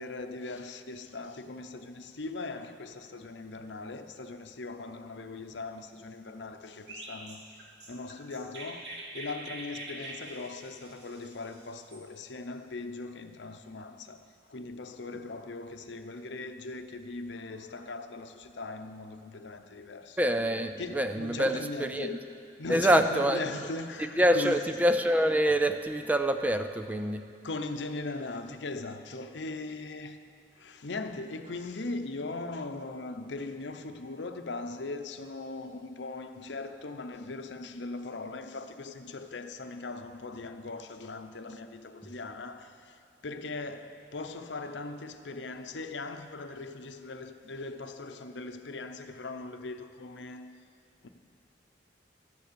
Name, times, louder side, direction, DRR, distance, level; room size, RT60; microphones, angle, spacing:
voice 1, 0.0-20.2 20.8-22.3 22.6-24.7 27.4-30.2 30.6-50.5 51.0-51.1, left 3 dB, 85° left, 0.7 m, -39 dB
Chirp tweet, 6.9-12.0, right 2 dB, 75° right, 2.4 m, -44 dB
voice 2, 20.2-22.2 22.7-23.4 24.2-27.2, right 1 dB, 10° right, 0.4 m, -26 dB
13.5 x 9.3 x 6.9 m
head